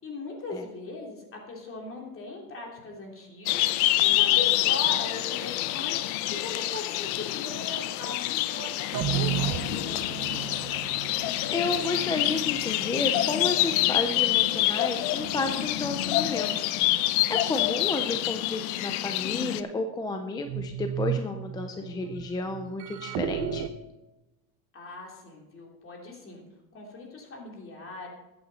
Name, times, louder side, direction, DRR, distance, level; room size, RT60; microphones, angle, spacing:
voice 1, 0.0-10.7 24.7-26.4 26.7-28.1, left 3 dB, 30° left, 0 dB, 3.1 m, -39 dB
sound 1, 3.5-19.6, left 15 dB, 70° left, 0.7 m, -27 dB
sound 2, 8.9-16.6 17.1-17.2 18.2-18.3 20.4-23.7, right 11 dB, 40° right, 0.8 m, -35 dB
voice 2, 11.5-16.7 17.3-23.7, left 3 dB, 10° left, 6 dB, 0.3 m, -31 dB
13.5 x 8.8 x 4.1 m, 1.0 s
supercardioid pair, 130°, 46 cm